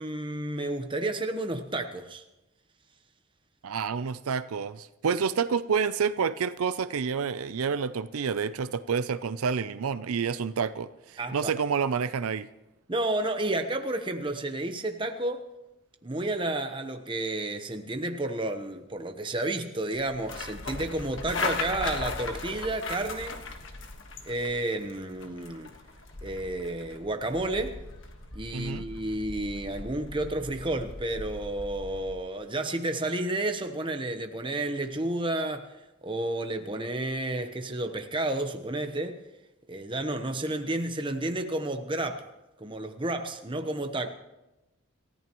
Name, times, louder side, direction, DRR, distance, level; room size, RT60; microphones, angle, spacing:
voice 1, 0.0-2.2 11.2-11.5 12.9-15.5 16.0-23.4 24.3-25.7 26.2-27.8 28.3-39.2 39.7-42.3 42.6-44.1, right 2 dB, 20° right, 1.0 m, -31 dB
voice 2, 3.6-12.5 28.5-28.9, right 6 dB, 80° right, 0.5 m, -29 dB
sound 1, 19.9-32.2, left 3 dB, 55° left, 1.6 m, -38 dB
27.5 x 14.0 x 3.1 m
head